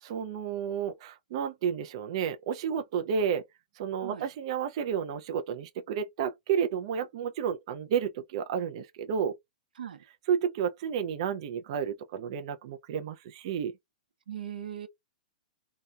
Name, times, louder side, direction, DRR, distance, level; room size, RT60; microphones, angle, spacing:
voice 1, 0.0-3.4 3.8-9.4 10.3-13.7, right 7 dB, 40° right, 0.3 m, -31 dB
voice 2, 14.3-14.9, right 9 dB, 85° right, 0.7 m, -39 dB
2.7 x 2.1 x 2.2 m
hypercardioid pair, 165°, 5 cm